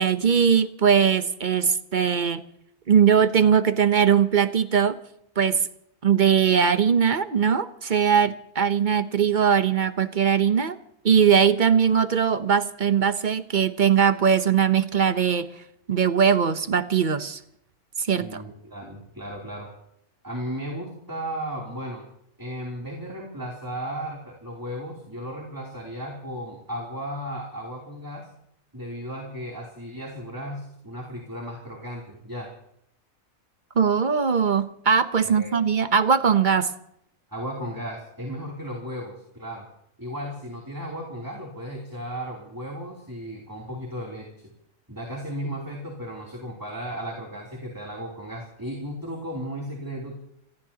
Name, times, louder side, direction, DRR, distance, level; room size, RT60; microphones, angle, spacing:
voice 1, 0.0-2.4 2.9-5.0 5.4-5.7 6.0-10.8 11.0-15.5 15.9-17.4 18.0-18.4 33.8-36.7, right 7 dB, 40° right, 11 dB, 0.9 m, -20 dB
voice 2, 18.2-19.7 20.2-22.0 22.4-28.3 28.7-32.5 35.2-35.5 37.3-39.6 40.0-44.5 44.9-50.2, equal, 15° right, -2 dB, 3.1 m, -35 dB
28.0 x 17.0 x 2.9 m, 0.73 s
omnidirectional pair, 1.4 m